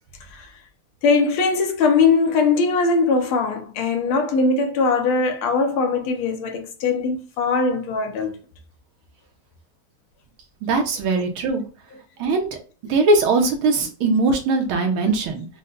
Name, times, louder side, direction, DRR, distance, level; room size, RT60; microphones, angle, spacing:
voice 1, 1.0-8.4, left 4 dB, 80° left, 1.6 m, -20 dB
voice 2, 10.6-11.6 12.2-12.5 12.9-15.5, right 3 dB, 80° right, 1.7 m, -20 dB
5.3 x 2.2 x 3.8 m
omnidirectional pair, 2.3 m